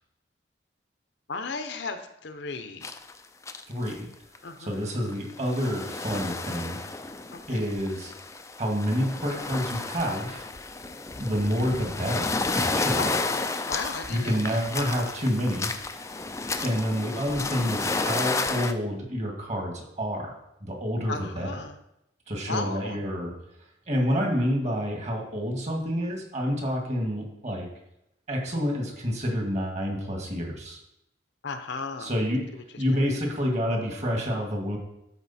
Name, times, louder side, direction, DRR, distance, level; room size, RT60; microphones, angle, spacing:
voice 1, 1.3-2.9 4.4-4.8 7.5-7.7 13.0-14.6 21.1-21.8 22.5-23.0 31.4-32.1, left 4 dB, 65° left, 8 dB, 0.8 m, -35 dB
sound 1, 2.8-3.1 3.4-4.0 4.4-4.5 5.1-18.7, left 3 dB, 15° left, 0.4 m, -32 dB
voice 2, 3.7-4.1 4.6-6.8 7.5-8.1 8.6-10.5 11.2-13.1 14.1-15.7 16.6-20.3 20.6-21.6 22.3-23.3 23.9-27.7 28.3-30.8 32.0-32.4 32.8-34.8, equal, 35° right, 1 dB, 1.9 m, -28 dB
12.5 x 4.9 x 4.3 m, 0.82 s
head